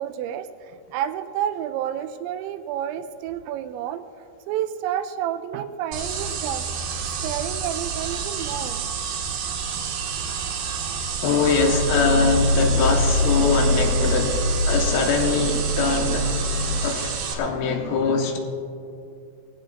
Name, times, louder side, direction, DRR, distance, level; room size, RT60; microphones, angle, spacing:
voice 1, 0.0-4.0 4.5-6.7 7.2-8.8 9.7-9.8 12.8-12.9, right 10 dB, 85° right, 9 dB, 2.8 m, -30 dB
sound 1, 5.9-17.3, right 6 dB, 65° right, 2.5 m, -29 dB
voice 2, 11.2-16.4 16.8-18.4, left 4 dB, 85° left, 2 dB, 3.7 m, -23 dB
sound 2, 11.4-16.8, left 1 dB, 70° left, 2.4 m, -24 dB
20.0 x 15.0 x 2.5 m, 2.5 s
omnidirectional pair, 5.4 m